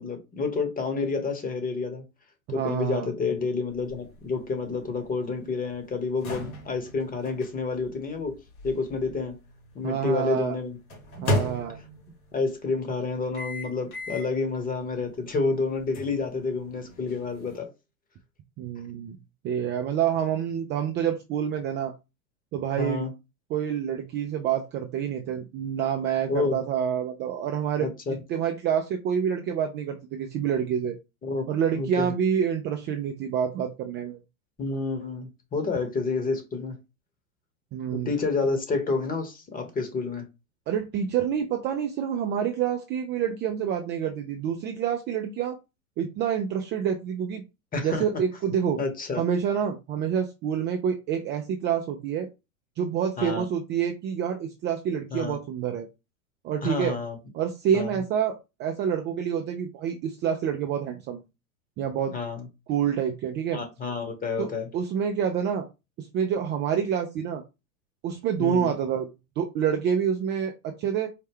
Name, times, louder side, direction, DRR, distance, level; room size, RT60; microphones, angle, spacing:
voice 1, 0.0-2.0 2.5-8.4 8.6-9.3 9.7-10.8 12.3-17.7 22.8-23.1 26.3-26.6 27.8-28.2 31.2-31.5 31.8-32.1 34.6-36.8 37.9-40.2 47.7-48.2 48.8-49.2 53.2-53.4 55.1-55.4 56.6-57.2 57.7-57.9 62.1-62.5 63.5-64.7 68.4-68.7, left 4 dB, 20° left, 1.1 m, -29 dB
voice 2, 2.5-3.1 9.8-10.6 11.2-11.8 18.6-19.2 19.4-21.9 22.5-23.1 23.5-27.9 28.3-31.0 31.5-34.2 37.7-38.1 40.7-45.6 46.0-47.4 47.8-48.8 49.2-52.3 52.8-55.9 56.4-57.0 57.3-61.2 61.8-62.1 62.7-63.6 64.4-65.7 66.0-67.4 68.0-69.1 69.4-71.1, right 8 dB, 25° right, 0.4 m, -27 dB
sound 1, 3.7-9.8 10.9-12.2 13.3-14.4 14.9-15.0 15.9-17.6, left 1 dB, 80° left, 1.9 m, -35 dB
4.6 x 2.1 x 3.5 m
hypercardioid pair, 105°, 42 cm